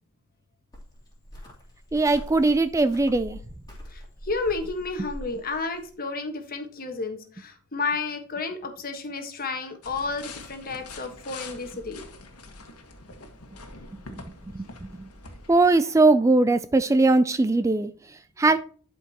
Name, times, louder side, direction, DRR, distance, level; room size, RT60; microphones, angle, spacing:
Cricket, 0.7-5.9, equal, 20° left, 3.1 m, -43 dB
voice 1, 1.9-3.4 14.5-14.9 15.5-18.6, right 2 dB, 15° right, 0.3 m, -20 dB
voice 2, 3.9-12.0, left 3 dB, 40° left, 1.4 m, -31 dB
sound 1, 9.8-15.7, left 3 dB, 90° left, 1.5 m, -44 dB
11.5 x 5.2 x 2.9 m
head